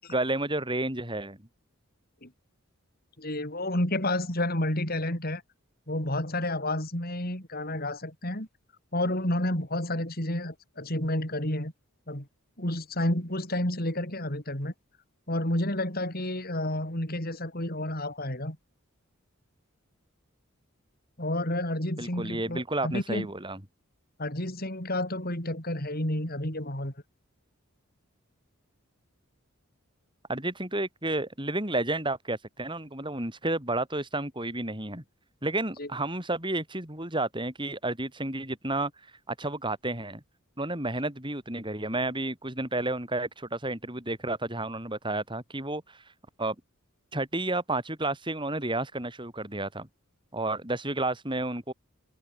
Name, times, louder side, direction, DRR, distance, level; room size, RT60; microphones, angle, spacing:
voice 1, 0.1-1.4 22.0-23.6 30.3-35.0 35.4-38.9 39.3-40.2 40.6-46.0 46.4-46.6 47.1-49.9 50.3-51.7, right 2 dB, 20° right, 7.4 m, -31 dB
voice 2, 3.2-5.4 5.9-8.5 8.9-11.7 12.1-12.3 12.6-14.7 15.3-18.6 21.2-23.3 24.2-26.9 35.8-35.9, left 1 dB, 45° left, 6.6 m, -30 dB
head